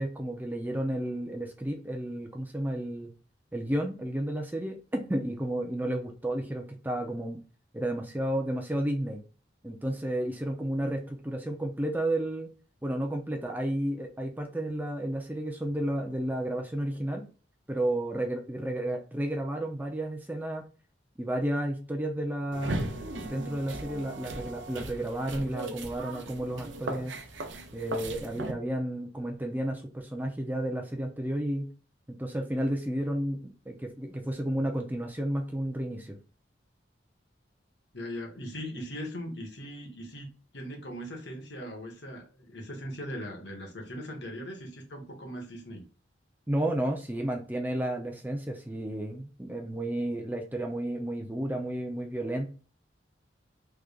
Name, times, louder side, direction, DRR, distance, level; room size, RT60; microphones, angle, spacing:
voice 1, 0.0-3.1 3.5-7.4 7.7-9.2 9.6-12.5 12.8-17.2 17.7-20.7 21.2-22.8 23.2-27.1 27.7-31.7 32.2-36.2 46.5-52.5, right 1 dB, 10° right, 2 dB, 0.5 m, -32 dB
sound 1, 22.5-28.5, right 2 dB, 75° right, 0.6 m, -38 dB
voice 2, 37.9-45.8, equal, 65° left, 1 dB, 1.3 m, -40 dB
3.5 x 3.2 x 2.4 m, 0.36 s
head